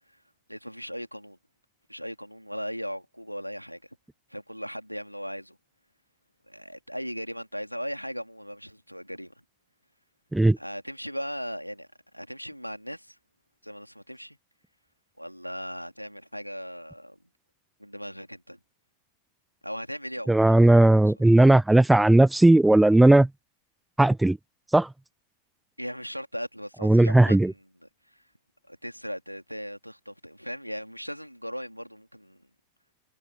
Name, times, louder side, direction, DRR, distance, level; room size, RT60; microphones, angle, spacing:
voice 1, 0.5-1.4 1.9-3.9 4.3-5.6 6.5-9.3 10.6-11.9 12.1-13.2 13.6-14.4 15.2-17.2 17.8-18.6 19.6-21.3 25.8-28.2 28.7-32.5, equal, 90° left, 3.0 m, -38 dB
voice 2, 20.3-23.3 24.0-24.4 24.7-24.9 26.8-27.5, right 2 dB, 5° right, 0.8 m, -17 dB
figure-of-eight pair, 90°, 0 cm